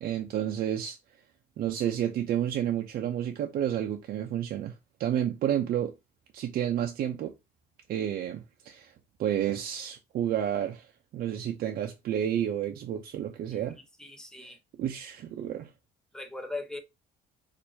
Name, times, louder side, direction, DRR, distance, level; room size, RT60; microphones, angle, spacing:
voice 1, 0.0-1.0 1.6-4.7 5.0-5.9 6.3-7.3 7.9-8.9 9.2-10.9 11.1-13.8 14.4-14.5 14.8-15.7, right 10 dB, 60° right, 0.6 m, -30 dB
voice 2, 13.5-14.6 16.1-16.8, left 2 dB, 5° left, 0.8 m, -40 dB
4.5 x 2.6 x 2.7 m
cardioid pair, 110°, 17 cm